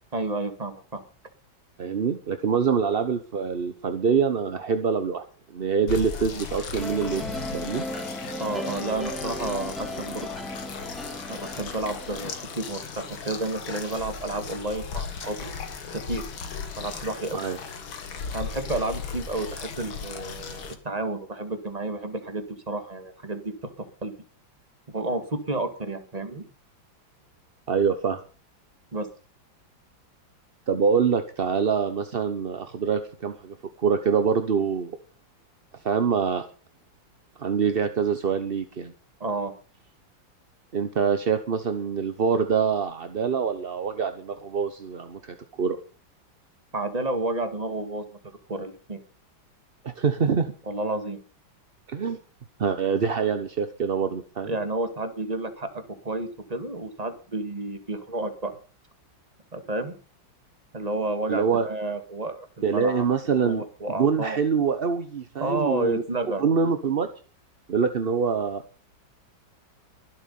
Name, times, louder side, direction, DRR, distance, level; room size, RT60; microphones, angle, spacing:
voice 1, 0.1-1.0 8.4-10.3 11.3-15.5 15.9-16.2 16.8-17.4 18.3-23.7 24.0-24.1 24.9-26.5 28.9-29.1 39.2-39.5 46.7-48.1 48.5-49.0 50.7-51.2 54.5-58.6 59.5-59.9 60.7-62.5 62.7-64.4 65.4-66.4, right 2 dB, 20° right, 7 dB, 1.9 m, -31 dB
voice 2, 1.8-5.2 5.5-7.8 17.3-17.6 27.7-28.2 30.7-35.0 35.8-36.5 37.4-38.9 40.7-45.8 49.8-50.5 51.9-52.2 52.6-54.5 61.3-61.7 62.6-63.6 63.9-66.0 66.4-67.1 67.7-68.6, right 6 dB, 40° right, 9 dB, 0.9 m, -25 dB
sound 1, 5.9-20.7, left 5 dB, 90° left, 2.5 m, -37 dB
sound 2, 6.8-13.0, left 1 dB, ahead, 2.3 m, -36 dB
23.0 x 8.1 x 5.4 m, 0.37 s
omnidirectional pair, 2.1 m